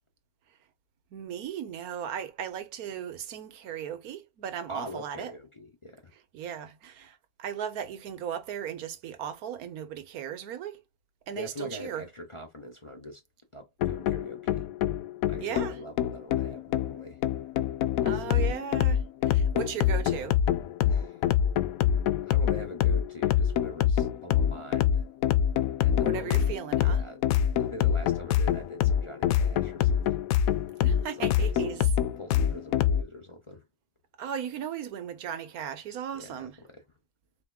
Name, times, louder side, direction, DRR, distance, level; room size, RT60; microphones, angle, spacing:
voice 1, 1.1-5.3 6.3-10.8 11.3-12.0 15.4-15.8 18.0-20.4 26.0-27.1 30.8-31.9 34.2-36.6, right 9 dB, 85° right, 1.3 m, -37 dB
voice 2, 4.7-6.0 11.4-13.2 13.5-14.7 15.3-17.2 18.1-18.5 20.8-21.2 22.3-25.0 25.8-26.4 26.8-27.2 27.6-30.2 31.2-31.8 32.2-33.6 36.1-36.8, left 1 dB, 25° left, 0.8 m, -43 dB
sound 1, 13.8-33.0, left 9 dB, 75° left, 1.0 m, -25 dB
4.7 x 3.6 x 2.2 m
omnidirectional pair, 1.5 m